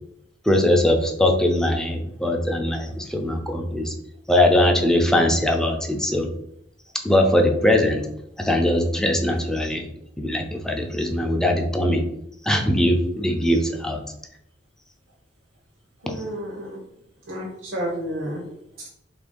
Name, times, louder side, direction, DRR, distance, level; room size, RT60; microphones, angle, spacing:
voice 1, 0.4-3.9 4.3-6.3 7.0-8.0 8.4-9.8 10.2-12.0 12.4-14.0 16.1-16.2, left 1 dB, 5° left, 2 dB, 0.4 m, -21 dB
voice 2, 16.0-16.8 17.3-18.4 18.8-18.9, equal, 85° right, -3 dB, 0.7 m, -31 dB
3.2 x 2.5 x 3.6 m, 0.77 s
head